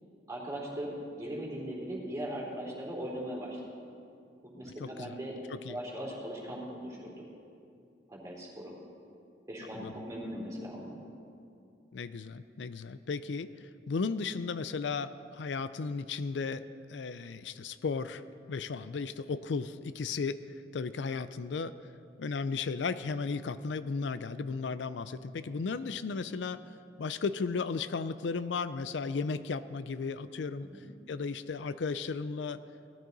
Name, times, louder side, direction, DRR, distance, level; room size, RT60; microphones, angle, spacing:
voice 1, 0.3-3.6 4.4-7.1 8.1-8.7 9.5-11.0 30.7-30.8, equal, 20° right, -4 dB, 3.0 m, -39 dB
voice 2, 4.8-5.2 5.5-5.8 9.8-9.9 11.9-16.6 16.9-18.2 18.5-20.4 20.7-21.7 22.2-26.6 27.0-30.7 31.1-32.6, left 4 dB, 80° left, 13 dB, 0.4 m, -35 dB
18.0 x 13.0 x 4.0 m, 2.5 s
head